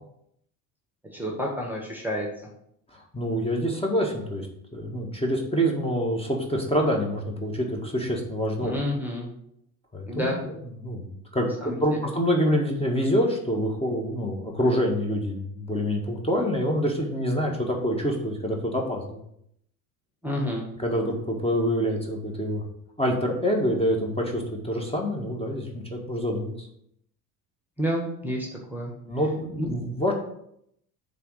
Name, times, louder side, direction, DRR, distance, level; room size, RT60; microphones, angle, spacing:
voice 1, 1.0-2.3 8.6-9.3 10.1-10.5 11.6-11.8 20.2-20.6 27.8-28.9 29.6-29.7, equal, 5° right, 0 dB, 1.7 m, -29 dB
voice 2, 2.9-4.5 4.7-8.7 9.9-19.2 20.8-22.6 23.0-26.7 29.1-30.1, equal, 10° left, 0 dB, 1.8 m, -26 dB
6.6 x 4.0 x 6.5 m, 0.74 s
hypercardioid pair, 65°, 47 cm